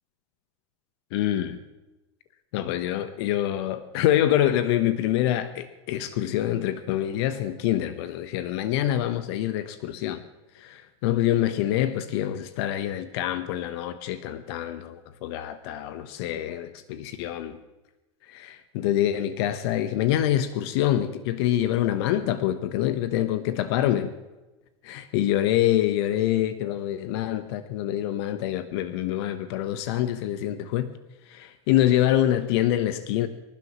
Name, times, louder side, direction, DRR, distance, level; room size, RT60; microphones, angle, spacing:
voice 1, 1.1-1.6 2.5-10.2 10.5-17.6 18.3-24.1 24.8-30.9 31.3-33.3, left 12 dB, 65° left, 11 dB, 1.1 m, -26 dB
25.5 x 12.0 x 3.1 m, 1.1 s
hypercardioid pair, 90°, 15 cm